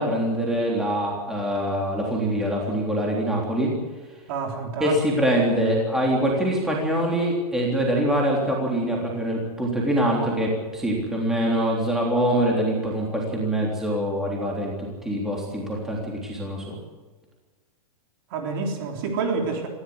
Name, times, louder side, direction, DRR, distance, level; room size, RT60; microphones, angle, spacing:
voice 1, 0.0-3.7 4.8-16.8, right 1 dB, 5° right, -2 dB, 3.5 m, -24 dB
voice 2, 4.3-5.0 18.3-19.7, right 4 dB, 40° right, 3 dB, 3.6 m, -28 dB
19.5 x 15.5 x 9.8 m, 1.3 s
supercardioid pair, 175°, 19 cm